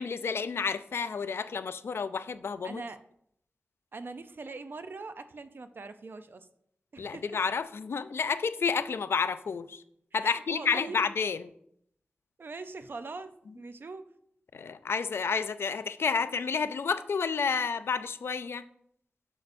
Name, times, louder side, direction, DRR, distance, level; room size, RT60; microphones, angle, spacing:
voice 1, 0.0-2.8 7.0-9.8 10.1-11.4 14.5-18.6, left 5 dB, 90° left, 13 dB, 0.4 m, -30 dB
voice 2, 2.6-3.0 3.9-6.5 6.9-7.2 10.1-11.0 12.4-14.1, right 3 dB, 60° right, 10 dB, 0.5 m, -42 dB
8.2 x 6.5 x 2.6 m, 0.70 s
wide cardioid pair, 85°, 4 cm